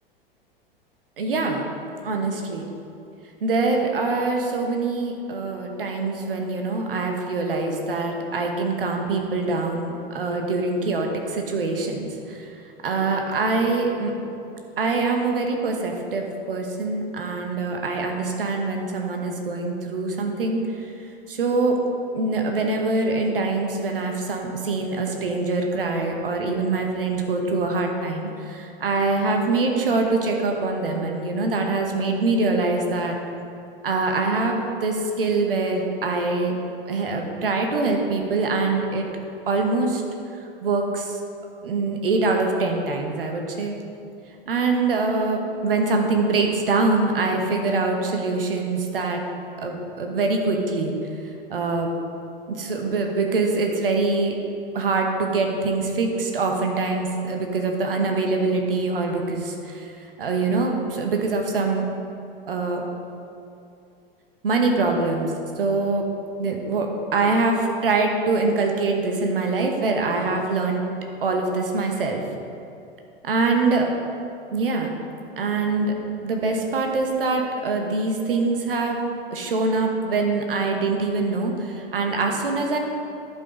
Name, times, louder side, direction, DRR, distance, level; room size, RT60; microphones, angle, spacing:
voice 1, 1.2-1.6 2.0-2.7 3.4-12.5 12.8-14.1 14.8-20.6 21.3-21.7 22.1-33.1 33.8-36.5 36.9-39.0 39.5-40.0 40.6-41.2 41.6-43.7 44.5-49.2 49.6-50.9 51.5-51.9 52.5-54.3 54.7-59.9 60.2-61.9 62.5-62.8 64.4-65.3 65.6-66.0 66.4-70.8 71.2-72.2 73.2-73.9 74.5-74.9 75.4-75.9 76.2-79.0 79.3-82.8, right 3 dB, 70° right, 2 dB, 1.3 m, -24 dB
11.0 x 5.5 x 5.2 m, 2.6 s
figure-of-eight pair, 85°, 29 cm